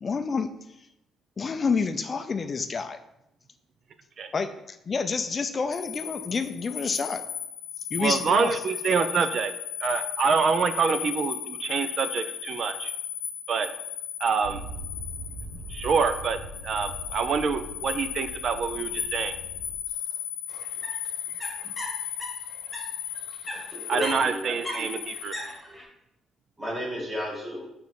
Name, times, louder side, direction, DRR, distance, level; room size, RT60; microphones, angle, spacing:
voice 1, 0.0-0.5 1.4-3.0 4.3-7.2 7.9-8.6, left 5 dB, 30° left, 9 dB, 0.4 m, -28 dB
sound 1, 5.7-25.6, left 10 dB, 65° left, 0.8 m, -36 dB
voice 2, 8.0-9.5 9.8-12.9 13.5-13.7 14.2-14.6 15.7-16.4 16.6-19.3 23.9-25.4, right 5 dB, 45° right, 10 dB, 0.5 m, -26 dB
Motor vehicle (road), 14.4-19.8, right 1 dB, 90° right, 0.8 m, -41 dB
sound 2, 20.5-22.8 23.1-25.8, equal, ahead, 2.1 m, -38 dB
voice 3, 23.7-24.5 26.6-27.7, left 1 dB, 20° right, -4 dB, 2.2 m, -33 dB
5.2 x 3.9 x 4.7 m, 0.82 s
cardioid pair, 130°, 0 cm